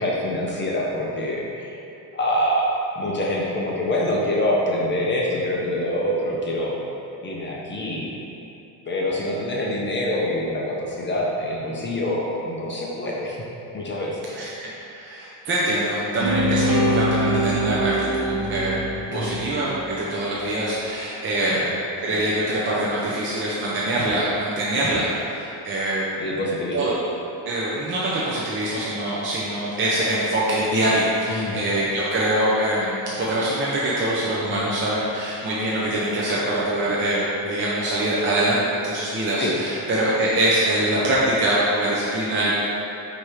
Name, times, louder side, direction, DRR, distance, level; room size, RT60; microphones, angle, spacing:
voice 1, 0.0-1.8 2.1-6.8 7.2-8.2 8.9-13.4 13.7-14.2 19.1-19.4 21.5-21.6 26.2-26.8 31.3-31.6 34.5-34.6 39.4-39.5, left 1 dB, 25° left, -3 dB, 0.7 m, -25 dB
voice 2, 14.3-18.8 19.1-21.8 22.0-26.1 26.7-26.9 27.5-42.6, right 1 dB, 30° right, -6 dB, 0.6 m, -24 dB
sound 1, 16.2-20.3, equal, 50° right, 1.1 m, -24 dB
4.8 x 4.3 x 4.9 m, 2.9 s
cardioid pair, 160°, 42 cm